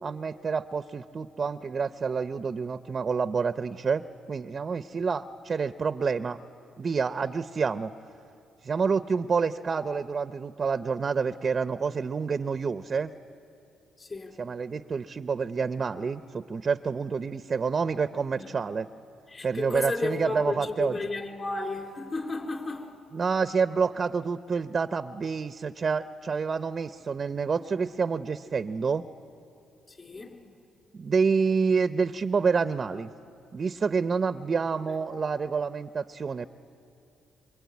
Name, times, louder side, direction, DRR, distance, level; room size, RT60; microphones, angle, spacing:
voice 1, 0.0-6.4 6.8-7.9 8.6-13.1 14.4-18.9 19.4-21.0 23.1-29.0 30.9-33.1 33.5-36.5, right 5 dB, 40° right, 0.6 m, -28 dB
voice 2, 14.0-14.4 18.4-18.5 19.3-22.9 29.9-30.5 34.9-35.0, left 3 dB, 35° left, 4.1 m, -33 dB
26.0 x 24.0 x 9.5 m
cardioid pair, 90°, 0 cm